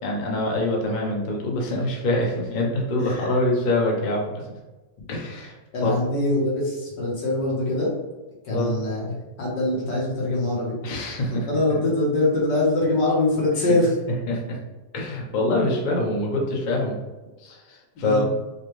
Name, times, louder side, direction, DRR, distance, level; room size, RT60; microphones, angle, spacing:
voice 1, 0.0-4.4 5.1-5.6 5.8-5.9 8.5-8.8 10.8-11.5 13.6-13.7 14.3-14.6 14.9-17.0 17.4-18.2, left 1 dB, 55° left, -1 dB, 0.5 m, -25 dB
voice 2, 5.7-7.9 8.5-9.1 9.4-10.8 11.3-13.9 18.0-18.3, left 2 dB, 70° left, -5 dB, 1.8 m, -23 dB
5.0 x 2.3 x 3.1 m, 1.2 s
omnidirectional pair, 2.0 m